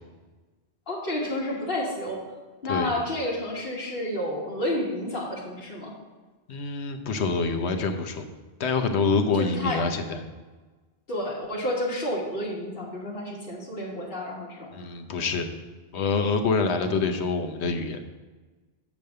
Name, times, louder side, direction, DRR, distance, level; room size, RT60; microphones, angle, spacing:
voice 1, 0.9-2.2 2.6-5.9 9.4-9.8 11.1-14.7, left 1 dB, 60° left, -5 dB, 1.8 m, -30 dB
voice 2, 6.5-8.3 8.6-10.2 14.7-15.5 15.9-18.0, left 4 dB, 80° left, 6 dB, 1.1 m, -26 dB
7.2 x 5.2 x 6.6 m, 1.3 s
omnidirectional pair, 1.1 m